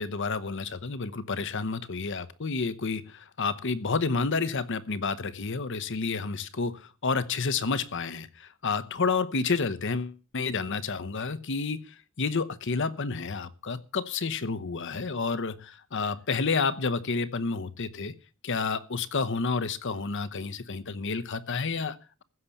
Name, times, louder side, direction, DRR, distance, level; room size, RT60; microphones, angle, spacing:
voice 1, 0.0-18.1 18.4-22.2, left 4 dB, 60° left, 0.9 m, -30 dB
15.5 x 6.7 x 7.1 m
head